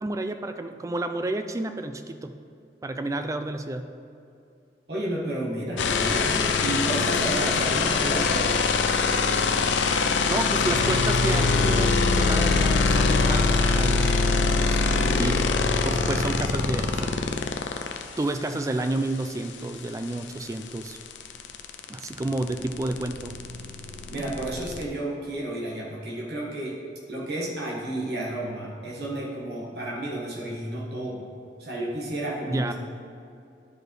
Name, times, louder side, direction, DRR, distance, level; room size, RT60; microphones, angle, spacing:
voice 1, 0.0-2.3 2.8-3.9 10.3-14.2 14.6-15.4 15.8-17.1 18.2-21.0 21.9-23.4 32.5-32.7, right 2 dB, 20° right, 8 dB, 0.3 m, -30 dB
voice 2, 4.9-8.6 22.2-22.3 24.1-26.8 27.1-31.2 31.6-32.7, right 1 dB, 60° right, -4 dB, 1.4 m, -31 dB
sound 1, 5.8-18.0 20.1-20.2 20.5-24.8, left 4 dB, 90° left, 0.5 m, -23 dB
11.0 x 4.9 x 3.1 m, 2.6 s
head